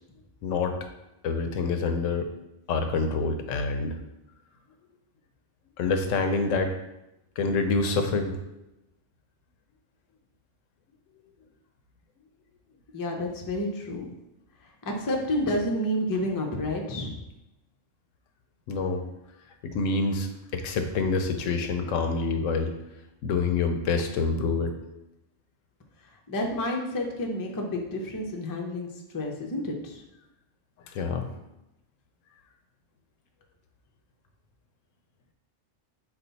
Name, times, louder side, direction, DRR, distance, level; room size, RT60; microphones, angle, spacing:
voice 1, 0.4-0.8 1.2-2.3 2.7-4.0 5.8-6.7 7.4-8.3 18.7-19.0 19.7-22.7 23.2-24.7 30.9-31.3, left 4 dB, 90° left, 6 dB, 1.0 m, -26 dB
voice 2, 12.9-14.1 14.9-17.2 26.3-28.9 29.1-30.0, left 1 dB, 30° left, 1 dB, 0.4 m, -29 dB
5.3 x 2.3 x 3.9 m, 0.91 s
omnidirectional pair, 1.3 m